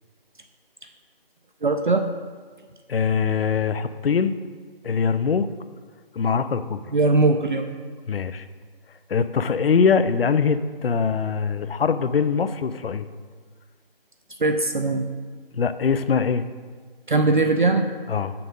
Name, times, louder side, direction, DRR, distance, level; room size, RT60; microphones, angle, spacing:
voice 1, 1.6-2.0 6.9-7.8 14.4-15.1 17.1-17.9, right 3 dB, 55° right, 6 dB, 0.4 m, -20 dB
voice 2, 2.9-4.3 4.8-5.5 6.2-6.8 8.1-8.5 9.1-13.1 15.5-16.5 18.1-18.3, left 6 dB, 75° left, 12 dB, 0.5 m, -22 dB
6.3 x 5.8 x 3.7 m, 1.5 s
figure-of-eight pair, 175°, 30 cm